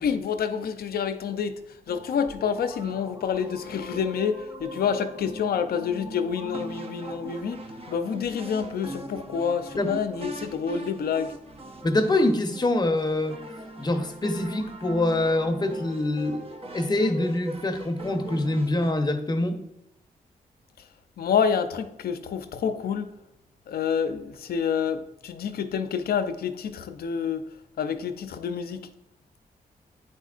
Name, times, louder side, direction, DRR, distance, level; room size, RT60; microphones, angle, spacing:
voice 1, 0.0-11.4 21.2-23.1 23.7-27.5 27.8-28.9, left 7 dB, 75° left, 0.5 m, -28 dB
sound 1, 1.9-18.9, right 1 dB, 35° right, 0.9 m, -41 dB
voice 2, 11.8-13.4 13.8-16.4 16.7-19.6, left 2 dB, 25° left, 0.8 m, -25 dB
9.0 x 4.3 x 2.4 m
cardioid pair, 70°, 16 cm